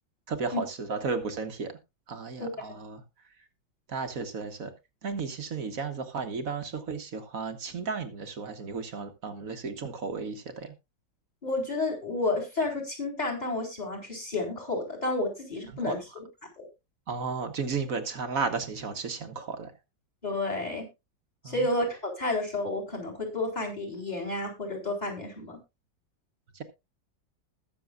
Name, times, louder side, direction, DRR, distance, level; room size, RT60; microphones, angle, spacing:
voice 1, 0.3-1.8 2.1-3.0 3.4-3.5 3.9-4.7 5.0-10.7 15.7-15.9 17.1-19.7 21.4-21.7 26.5-26.6, right 5 dB, 50° right, 8 dB, 1.5 m, -34 dB
voice 2, 11.4-16.0 16.6-16.7 20.2-20.9 21.4-25.6, left 2 dB, 20° left, 3 dB, 4.0 m, -31 dB
21.0 x 7.0 x 2.4 m, 0.24 s
omnidirectional pair, 2.0 m